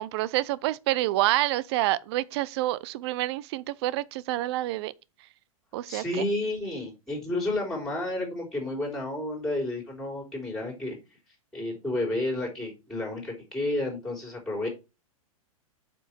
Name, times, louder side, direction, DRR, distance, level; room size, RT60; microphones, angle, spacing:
voice 1, 0.0-4.9 5.7-6.2, right 16 dB, 45° right, 0.6 m, -28 dB
voice 2, 5.9-11.0 11.5-14.7, left 1 dB, 5° left, 3.7 m, -31 dB
8.0 x 5.3 x 4.4 m
hypercardioid pair, 110°, 19 cm